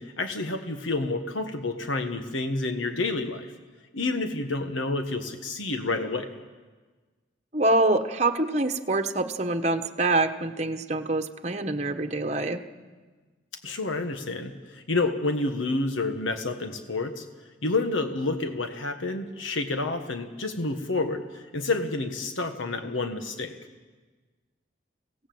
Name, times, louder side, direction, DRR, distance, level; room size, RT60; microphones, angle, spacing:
voice 1, 0.0-3.5 3.9-6.3 13.6-17.3 17.6-23.5, left 3 dB, 90° left, 6 dB, 1.5 m, -29 dB
voice 2, 7.5-12.6, right 2 dB, 35° right, 6 dB, 1.2 m, -25 dB
26.0 x 17.5 x 7.8 m, 1.4 s
head